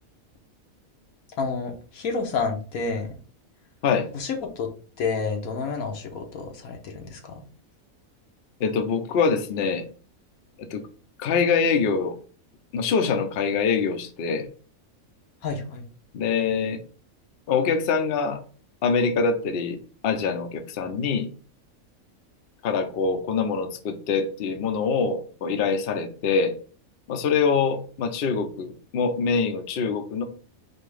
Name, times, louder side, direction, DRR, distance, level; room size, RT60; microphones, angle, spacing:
voice 1, 1.4-3.1 4.1-4.7 5.0-7.4 15.4-15.8, left 4 dB, 80° left, 3 dB, 1.3 m, -29 dB
voice 2, 8.6-9.9 10.6-10.9 11.2-12.2 12.7-14.5 16.1-16.8 17.5-18.4 18.8-19.8 20.0-21.3 22.6-26.6 27.1-30.2, left 5 dB, 55° left, 7 dB, 0.7 m, -24 dB
4.2 x 2.8 x 3.2 m, 0.39 s
omnidirectional pair, 1.5 m